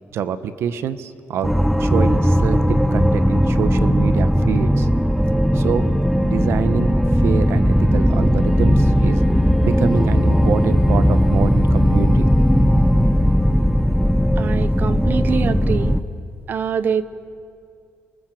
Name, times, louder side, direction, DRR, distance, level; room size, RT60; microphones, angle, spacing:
voice 1, 0.1-1.5 1.8-4.9 5.5-6.9 7.2-9.2 9.6-12.3 12.6-12.7, right 8 dB, 75° right, 13 dB, 1.1 m, -26 dB
sound 1, 1.4-16.0, equal, ahead, 0.7 m, -17 dB
voice 2, 14.4-16.0 16.5-17.0, right 7 dB, 50° right, 15 dB, 0.8 m, -24 dB
28.5 x 19.0 x 7.7 m, 2.5 s
cardioid pair, 150°, 4 cm